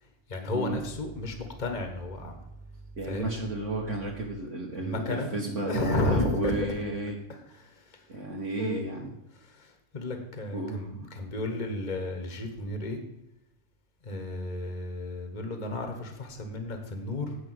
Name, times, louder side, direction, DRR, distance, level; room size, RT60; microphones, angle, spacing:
voice 1, 0.3-2.5 3.0-3.3 4.8-5.3 5.6-6.7 7.3-8.2 8.6-8.9 9.4-13.0 14.0-17.4, left 2 dB, 30° left, 5 dB, 1.3 m, -33 dB
voice 2, 3.0-7.2 8.1-9.1 10.5-11.1, right 2 dB, 60° right, -3 dB, 1.6 m, -32 dB
9.0 x 4.9 x 7.7 m, 0.88 s
omnidirectional pair, 1.4 m